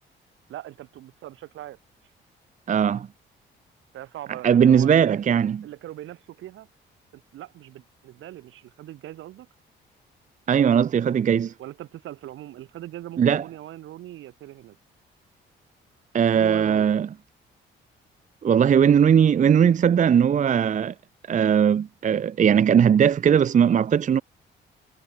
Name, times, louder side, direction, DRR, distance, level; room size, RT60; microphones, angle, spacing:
voice 1, 0.5-1.8 3.9-6.7 7.1-9.5 11.6-14.8 16.2-17.1, right 14 dB, 85° right, 6.0 m, -41 dB
voice 2, 2.7-3.1 4.4-5.7 10.5-11.5 13.2-13.4 16.1-17.1 18.4-20.9 21.3-24.2, right 8 dB, 40° right, 0.6 m, -19 dB
cardioid pair, 90°, 20 cm